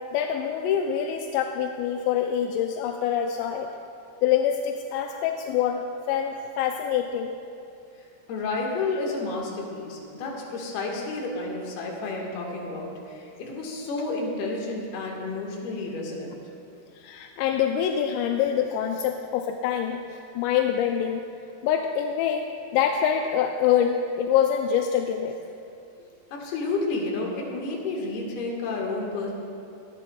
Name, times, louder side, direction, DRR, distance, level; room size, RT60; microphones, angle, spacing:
voice 1, 0.1-3.7 4.2-5.8 6.1-7.4 16.9-21.2 21.6-25.4, left 9 dB, 85° left, 4 dB, 2.8 m, -25 dB
voice 2, 8.3-16.4 26.3-29.3, left 3 dB, 70° left, -1 dB, 3.4 m, -31 dB
25.5 x 10.5 x 2.3 m, 2.6 s
omnidirectional pair, 5.0 m